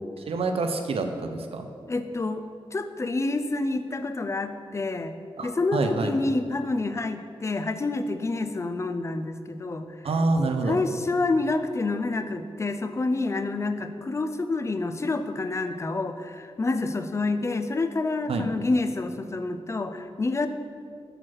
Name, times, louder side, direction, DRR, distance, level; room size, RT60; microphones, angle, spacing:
voice 1, 0.3-1.7 5.4-6.1 10.0-10.8 18.3-18.5, right 3 dB, 80° right, 6 dB, 0.6 m, -27 dB
voice 2, 1.9-2.4 2.7-5.1 5.4-9.9 10.7-20.5, left 3 dB, 30° left, 9 dB, 0.4 m, -28 dB
6.5 x 4.5 x 6.2 m, 2.2 s
wide cardioid pair, 150°, 10 cm